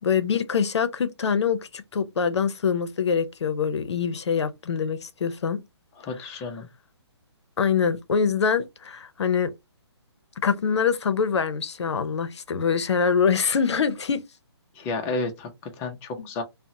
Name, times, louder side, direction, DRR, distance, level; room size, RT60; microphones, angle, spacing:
voice 1, 0.0-5.6 7.6-9.5 10.4-14.2 16.2-16.3, left 6 dB, 75° left, 0.5 m, -24 dB
voice 2, 6.0-6.7 14.8-16.4, left 3 dB, 15° left, 0.4 m, -31 dB
2.8 x 2.0 x 2.6 m
hypercardioid pair, 155°, 14 cm